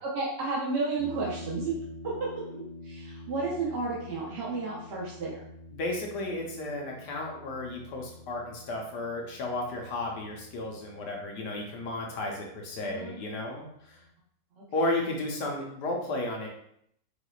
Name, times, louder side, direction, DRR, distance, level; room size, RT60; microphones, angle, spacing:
voice 1, 0.0-1.7 2.0-2.1 2.5-5.4 12.8-13.2 14.6-14.7, right 3 dB, 45° right, -6 dB, 0.8 m, -32 dB
sound 1, 1.0-14.1, left 1 dB, 30° left, 0.4 m, -48 dB
voice 2, 5.7-14.0 14.7-16.5, left 2 dB, 70° left, 0 dB, 1.3 m, -33 dB
4.7 x 3.4 x 2.3 m, 0.71 s
omnidirectional pair, 1.9 m